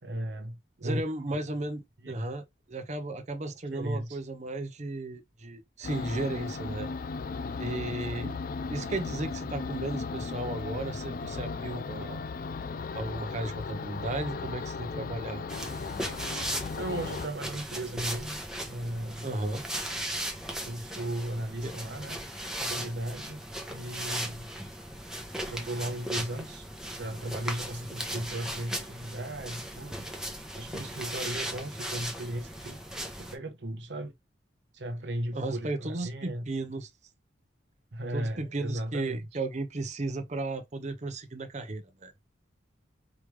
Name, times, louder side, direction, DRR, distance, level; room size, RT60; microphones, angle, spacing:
voice 1, 0.0-1.0 2.0-2.2 3.7-4.2 16.7-18.4 18.6-19.3 20.6-22.2 22.6-23.4 23.7-24.5 25.5-30.1 30.5-32.8 33.2-34.1 34.7-36.4 37.9-39.3, right 1 dB, 60° right, 0.9 m, -36 dB
voice 2, 0.8-6.9 7.6-8.4 8.7-12.2 12.9-15.5 19.2-19.6 21.6-21.7 35.3-36.9 38.1-42.1, right 2 dB, 35° right, 0.7 m, -35 dB
sound 1, 5.8-17.3, left 4 dB, 45° left, 0.3 m, -36 dB
sound 2, 15.5-33.3, right 1 dB, 5° right, 0.9 m, -37 dB
4.9 x 3.2 x 3.3 m
head